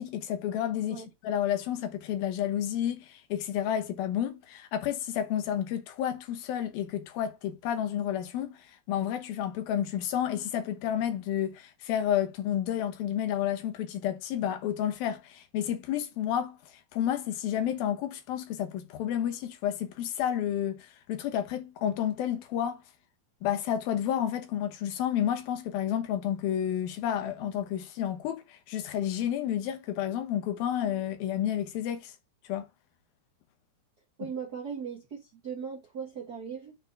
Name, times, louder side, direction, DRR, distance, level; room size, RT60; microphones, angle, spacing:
voice 1, 0.0-16.6 16.9-22.8 23.4-32.1 32.4-32.6, left 10 dB, 90° left, 3.0 m, -30 dB
voice 2, 34.2-36.8, right 6 dB, 55° right, 1.1 m, -38 dB
6.6 x 4.6 x 6.4 m
omnidirectional pair, 4.1 m